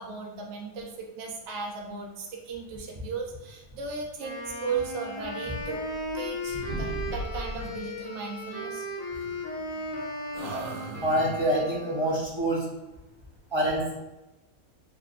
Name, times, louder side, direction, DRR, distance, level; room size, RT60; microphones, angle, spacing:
voice 1, 0.0-5.8 6.1-8.9, right 5 dB, 60° right, 0 dB, 0.9 m, -36 dB
Wind instrument woodwind instrument, 4.2-12.3, left 1 dB, 35° left, 0.7 m, -36 dB
sound 1, 5.5-6.3 6.6-7.8 9.1-10.0 10.3-11.6, right 1 dB, 85° right, 1.0 m, -38 dB
voice 2, 11.0-12.6 13.5-13.9, right 1 dB, 25° right, -6 dB, 0.6 m, -26 dB
3.3 x 2.1 x 3.8 m, 1.0 s
omnidirectional pair, 1.5 m